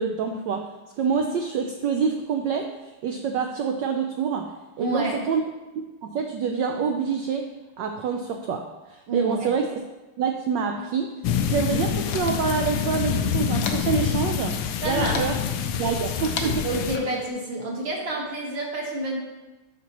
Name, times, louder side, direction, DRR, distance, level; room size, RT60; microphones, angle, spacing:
voice 1, 0.0-5.4 5.7-9.7 10.2-15.4 15.8-16.6, right 6 dB, 75° right, 4 dB, 1.0 m, -27 dB
voice 2, 4.8-5.2 9.1-9.5 14.8-15.2 15.6-16.0 16.6-19.2, right 1 dB, 60° right, -1 dB, 2.0 m, -29 dB
sound 1, 11.2-17.0, left 8 dB, 90° left, 1.5 m, -26 dB
sound 2, 11.6-17.3, left 4 dB, 65° left, 1.2 m, -38 dB
11.0 x 5.9 x 2.9 m, 1.1 s
omnidirectional pair, 2.4 m